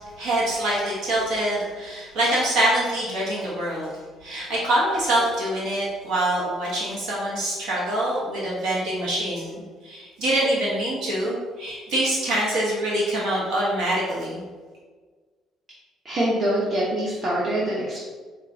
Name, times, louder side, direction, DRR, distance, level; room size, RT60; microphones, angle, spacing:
voice 1, 0.2-3.9 4.2-9.5 9.8-14.4, right 1 dB, 80° right, -6 dB, 1.1 m, -25 dB
voice 2, 16.0-18.0, right 1 dB, 35° right, -6 dB, 0.9 m, -24 dB
4.4 x 2.5 x 3.7 m, 1.5 s
cardioid pair, 125°, 0 cm